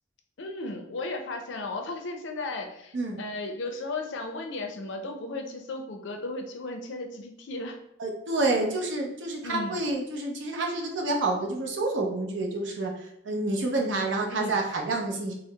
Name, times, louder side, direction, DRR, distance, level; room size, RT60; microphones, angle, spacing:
voice 1, 0.4-7.8 9.4-9.8 14.3-14.6, left 2 dB, 65° left, 4 dB, 0.4 m, -35 dB
voice 2, 8.0-15.3, right 2 dB, 70° right, 0 dB, 0.6 m, -28 dB
4.4 x 2.0 x 2.2 m, 0.79 s
head